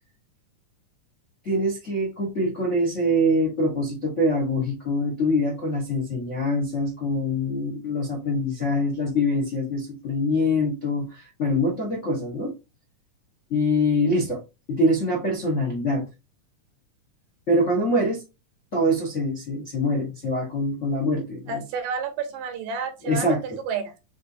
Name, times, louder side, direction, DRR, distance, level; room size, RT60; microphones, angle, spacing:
voice 1, 1.4-12.5 13.5-14.4 14.7-16.1 17.5-18.2 18.7-21.6 23.0-23.4, left 1 dB, 55° left, 0.8 m, -24 dB
voice 2, 21.5-23.4 23.7-23.9, right 5 dB, 80° right, 2.7 m, -30 dB
7.2 x 2.6 x 2.6 m
omnidirectional pair, 3.9 m